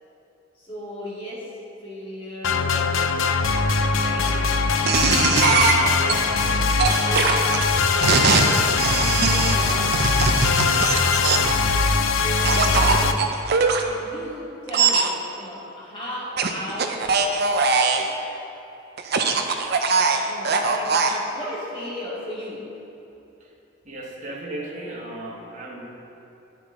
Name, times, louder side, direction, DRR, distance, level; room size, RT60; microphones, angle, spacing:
voice 1, 0.5-1.5 1.8-5.1 5.7-7.5 7.9-11.0 12.1-13.3 13.8-17.1 20.2-22.7, equal, 25° left, -6 dB, 2.2 m, -37 dB
sound 1, 2.4-13.1, left 4 dB, 85° left, 0.5 m, -21 dB
sound 2, 4.9-6.1 6.8-11.6 12.4-13.8 14.7-15.1 16.4-18.1 19.0-21.2, right 4 dB, 55° right, 0.6 m, -21 dB
voice 2, 23.8-25.9, right 1 dB, 40° right, -3 dB, 1.4 m, -35 dB
10.5 x 9.2 x 3.7 m, 2.9 s
head